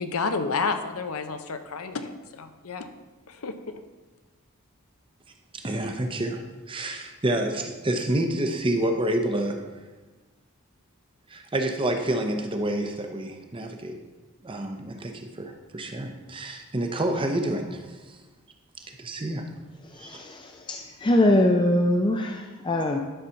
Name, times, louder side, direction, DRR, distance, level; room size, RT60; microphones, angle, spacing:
voice 1, 0.0-2.9 3.3-3.6, left 4 dB, 75° left, 8 dB, 0.7 m, -30 dB
voice 2, 5.5-6.4 6.7-9.6 11.3-14.0 14.4-18.2 18.9-19.5 20.0-20.2, right 1 dB, 25° right, 5 dB, 0.7 m, -28 dB
voice 3, 19.8-23.0, left 1 dB, 20° left, 3 dB, 0.5 m, -23 dB
11.0 x 4.1 x 5.7 m, 1.2 s
head